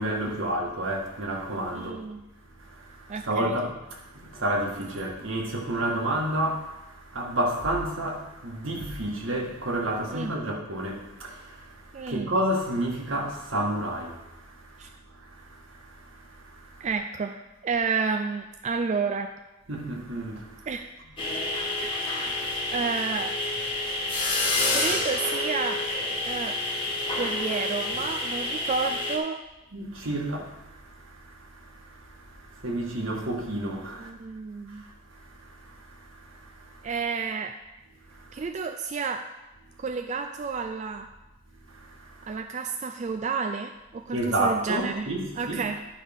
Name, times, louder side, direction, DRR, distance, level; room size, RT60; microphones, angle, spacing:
voice 1, 0.0-2.0 2.6-16.9 19.7-20.7 21.3-21.9 22.4-22.7 24.2-24.8 29.7-34.1 34.7-36.9 38.0-38.4 41.7-42.4 44.1-45.6, right 1 dB, 80° right, 1.6 m, -31 dB
voice 2, 1.7-2.2 3.1-3.6 10.1-10.3 11.9-12.3 14.8-14.9 16.8-19.3 20.7-21.0 21.8-21.9 22.7-23.3 24.7-25.8 26.2-26.6 27.2-29.4 34.0-34.8 36.8-37.5 38.3-39.3 39.8-41.1 42.3-45.1 45.4-45.8, right 5 dB, 35° right, 0.3 m, -30 dB
sound 1, 21.2-29.2, left 2 dB, 25° left, 1.4 m, -28 dB
11.0 x 5.6 x 3.6 m
head